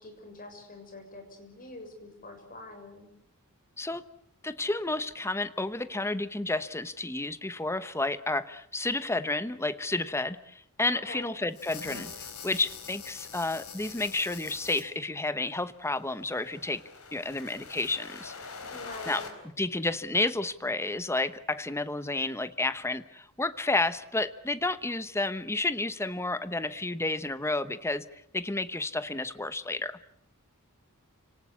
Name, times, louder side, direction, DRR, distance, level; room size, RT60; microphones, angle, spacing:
voice 1, 0.0-3.1 11.1-11.3 18.7-19.3, left 2 dB, 40° left, 5 dB, 6.9 m, -45 dB
voice 2, 4.4-16.8 17.1-18.3 19.1-19.2 19.6-30.0, left 2 dB, 10° left, 14 dB, 1.0 m, -31 dB
sound 1, 11.5-14.8 16.0-19.3, left 5 dB, 90° left, 4.2 m, -44 dB
30.0 x 18.5 x 8.5 m, 0.70 s
head